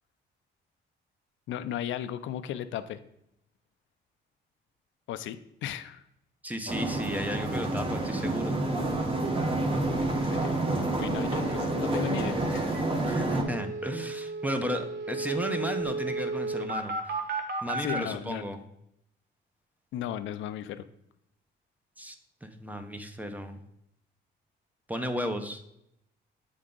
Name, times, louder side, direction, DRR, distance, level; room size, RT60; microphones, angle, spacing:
voice 1, 1.5-3.0 5.1-6.0 10.1-10.5 11.0-12.8 17.7-18.4 19.9-20.8, left 11 dB, 75° left, 12 dB, 0.4 m, -35 dB
voice 2, 6.4-8.6 11.5-11.7 13.0-17.2 17.6-18.6 22.0-22.1 22.4-23.6 24.9-25.6, equal, 10° right, 7 dB, 0.7 m, -34 dB
sound 1, 6.7-13.4, right 2 dB, 25° right, 1.1 m, -28 dB
sound 2, 12.7-12.8 13.1-13.2 13.4-18.0, right 3 dB, 55° right, 1.0 m, -33 dB
7.8 x 3.7 x 3.8 m, 0.79 s
cardioid pair, 90°, 20 cm